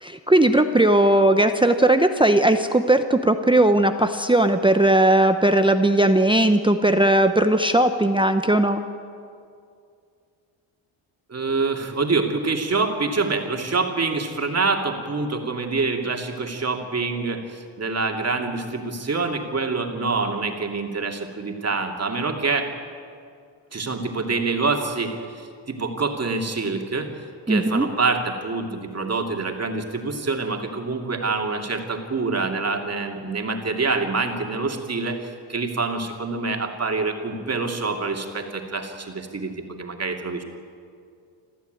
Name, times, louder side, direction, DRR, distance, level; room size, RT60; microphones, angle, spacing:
voice 1, 0.0-8.8 27.5-27.9, right 1 dB, 10° right, 7 dB, 0.8 m, -18 dB
voice 2, 11.3-22.7 23.7-27.1 27.5-35.2 35.5-40.4, right 3 dB, 30° right, 3 dB, 2.7 m, -26 dB
26.5 x 14.5 x 9.3 m, 2.3 s
cardioid pair, 130°, 48 cm